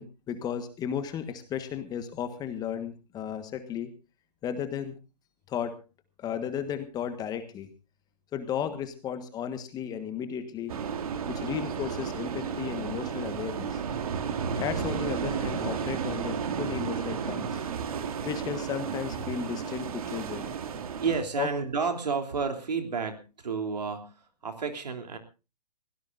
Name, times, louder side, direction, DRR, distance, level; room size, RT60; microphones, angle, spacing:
voice 1, 0.0-3.9 4.4-4.9 5.5-5.7 6.2-7.7 8.3-10.7 11.3-13.8 14.6-17.7 18.2-20.5 21.4-21.5, left 8 dB, 20° left, 9 dB, 1.4 m, -34 dB
sound 1, 10.7-21.2, right 7 dB, 60° right, 2.3 m, -33 dB
voice 2, 21.0-25.2, right 5 dB, 75° right, 5 dB, 3.2 m, -31 dB
24.0 x 17.0 x 2.6 m, 0.31 s
hypercardioid pair, 130°, 21 cm